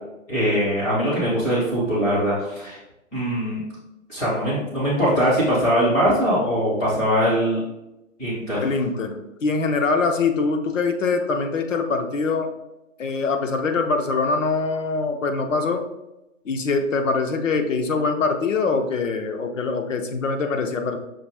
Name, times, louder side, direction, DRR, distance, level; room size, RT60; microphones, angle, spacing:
voice 1, 0.3-2.8 3.1-3.6 4.1-7.6 8.2-8.6, equal, 5° left, -7 dB, 0.5 m, -21 dB
voice 2, 8.6-12.5 13.0-15.8 16.5-21.0, left 4 dB, 70° left, 5 dB, 0.8 m, -23 dB
5.8 x 2.5 x 3.4 m, 0.93 s
hypercardioid pair, 140°, 39 cm